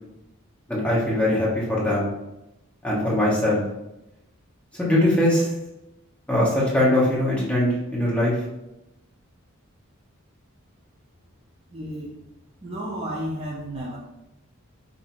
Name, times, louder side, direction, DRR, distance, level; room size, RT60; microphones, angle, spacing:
voice 1, 0.7-2.1 2.8-3.6 4.8-5.5 6.3-8.4, left 1 dB, 5° left, -7 dB, 1.0 m, -21 dB
voice 2, 11.7-12.2 12.6-14.0, equal, 25° right, -4 dB, 0.4 m, -32 dB
2.8 x 2.6 x 4.2 m, 0.91 s
head